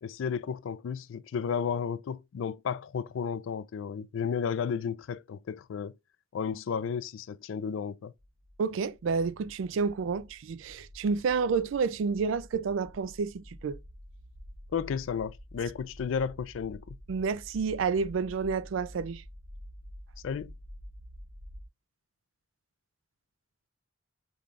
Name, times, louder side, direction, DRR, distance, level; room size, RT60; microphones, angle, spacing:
voice 1, 0.0-5.9 6.3-8.1 14.7-17.0 20.2-20.5, left 6 dB, 85° left, 0.3 m, -33 dB
sound 1, 8.2-21.7, equal, 70° right, 3.0 m, -49 dB
voice 2, 8.6-13.8 17.1-19.2, right 5 dB, 85° right, 0.4 m, -30 dB
5.3 x 3.2 x 2.3 m
head